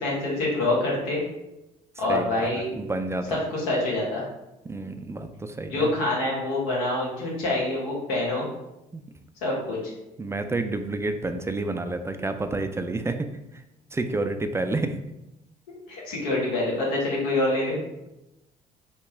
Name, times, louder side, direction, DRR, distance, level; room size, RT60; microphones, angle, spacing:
voice 1, 0.0-1.2 2.0-2.7 3.3-4.2 5.7-8.5 9.4-9.8 15.9-17.8, left 2 dB, 75° left, -4 dB, 1.1 m, -26 dB
voice 2, 2.8-3.4 4.7-5.9 8.9-9.0 10.2-13.3 13.9-15.0 17.8-18.1, right 2 dB, 15° right, 7 dB, 0.3 m, -29 dB
2.9 x 2.3 x 3.4 m, 0.92 s
hypercardioid pair, 55°, 20 cm